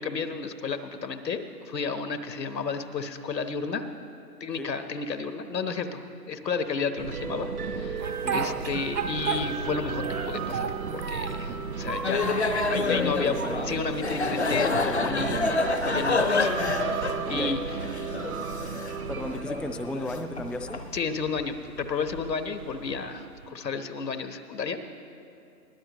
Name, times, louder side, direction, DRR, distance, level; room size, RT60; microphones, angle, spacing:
voice 1, 0.0-3.8 4.4-8.1 8.3-13.4 13.7-15.5 15.8-17.6 20.9-24.8, left 5 dB, 80° left, 8 dB, 1.3 m, -32 dB
sound 1, 7.0-23.5, right 5 dB, 60° right, 0.9 m, -35 dB
Speech, 8.0-9.7 10.0-11.4 11.8-12.8 13.3-14.1, right 5 dB, 80° right, 1.8 m, -33 dB
sound 2, 12.0-20.9, left 3 dB, 45° left, 0.6 m, -28 dB
voice 2, 12.8-13.6 14.8-15.0 15.3-15.6 17.3-17.8 19.1-20.8, left 1 dB, ahead, 7 dB, 0.3 m, -35 dB
22.0 x 16.0 x 3.0 m, 2.6 s
hypercardioid pair, 180°, 49 cm